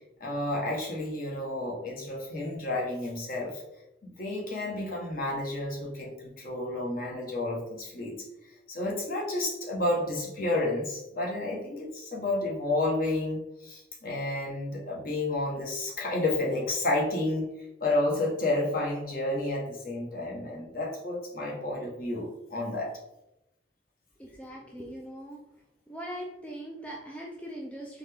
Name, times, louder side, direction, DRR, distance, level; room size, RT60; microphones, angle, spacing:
voice 1, 0.2-3.6 4.2-8.1 8.7-17.5 17.8-22.9, left 2 dB, 50° left, -2 dB, 1.1 m, -31 dB
voice 2, 24.2-25.4 25.9-28.0, equal, 5° left, -2 dB, 0.4 m, -40 dB
4.0 x 3.4 x 3.4 m, 0.89 s
head